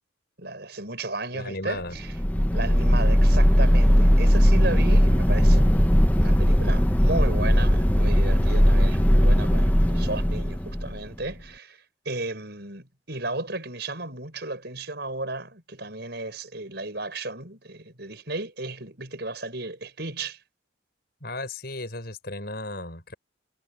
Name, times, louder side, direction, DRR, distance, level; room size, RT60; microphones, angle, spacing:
voice 1, 0.4-2.2 2.5-5.9 6.2-20.4, right 2 dB, 55° right, 7.6 m, -34 dB
voice 2, 1.3-2.0 21.2-23.1, left 2 dB, 50° left, 6.9 m, -35 dB
sound 1, 1.9-11.3, equal, 10° left, 1.2 m, -19 dB
head